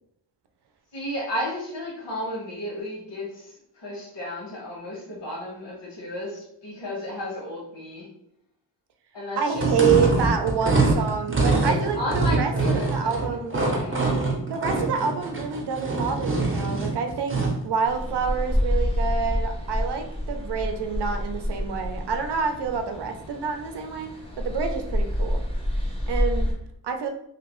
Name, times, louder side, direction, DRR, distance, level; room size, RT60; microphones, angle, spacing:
voice 1, 0.9-8.1 9.1-9.9 11.6-14.2, left 1 dB, 75° left, -5 dB, 1.3 m, -33 dB
voice 2, 9.4-13.6 14.5-17.4 17.6-24.1 24.4-25.4 26.1-26.5 26.8-27.1, right 6 dB, 70° right, 5 dB, 0.6 m, -27 dB
sound 1, 9.5-17.6, right 3 dB, 30° right, 0.7 m, -24 dB
sound 2, 17.8-26.5, equal, 15° left, 0.6 m, -28 dB
3.0 x 2.9 x 3.0 m, 0.75 s
wide cardioid pair, 155°, 43 cm